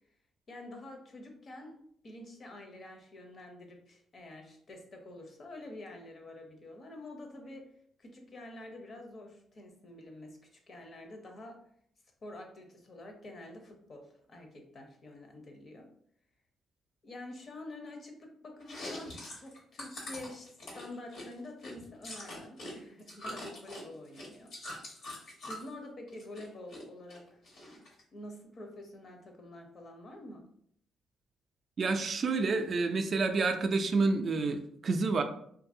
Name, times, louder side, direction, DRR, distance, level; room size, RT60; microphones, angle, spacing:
voice 1, 0.5-1.8 2.0-7.7 8.0-11.6 12.2-15.9 17.0-24.5 25.4-27.4 28.1-30.5, left 1 dB, 45° left, 4 dB, 0.6 m, -47 dB
Chewing mastication, 18.6-22.7 23.0-25.7 26.1-26.8 27.1-28.0, left 1 dB, 80° left, 1.3 m, -44 dB
voice 2, 31.8-35.2, right 3 dB, 50° right, 6 dB, 0.3 m, -29 dB
2.7 x 2.6 x 2.6 m, 0.66 s
cardioid pair, 90°, 0 cm